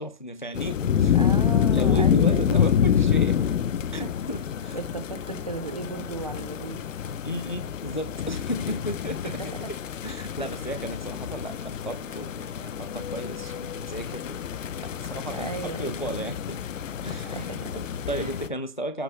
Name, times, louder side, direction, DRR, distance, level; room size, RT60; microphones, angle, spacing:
voice 1, 0.0-1.2 1.7-3.5 3.9-4.8 7.2-9.2 9.4-9.8 10.0-14.4 14.8-15.5 15.8-16.6 17.0-19.0, equal, 35° left, 0.4 m, -34 dB
sound 1, 0.5-18.5, left 8 dB, 55° left, 0.8 m, -27 dB
voice 2, 1.1-2.7 4.0-4.1 4.7-6.8 9.2-9.7 15.3-16.0 17.2-18.3, right 3 dB, 25° right, 0.5 m, -36 dB
15.5 x 9.1 x 2.2 m
hypercardioid pair, 170°, 46 cm